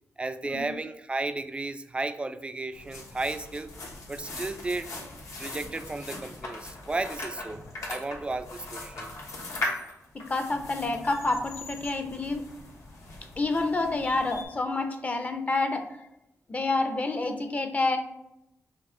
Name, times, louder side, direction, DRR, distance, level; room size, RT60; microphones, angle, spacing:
voice 1, 0.2-3.7 4.1-4.9 5.4-9.1, right 2 dB, 20° right, 11 dB, 0.3 m, -34 dB
sound 1, 2.7-14.4, left 2 dB, 70° left, 1.2 m, -39 dB
voice 2, 10.1-12.4 13.4-16.0 16.5-18.0, left 2 dB, 30° left, 6 dB, 0.6 m, -28 dB
5.3 x 2.4 x 3.8 m, 0.86 s
cardioid pair, 95°, 5 cm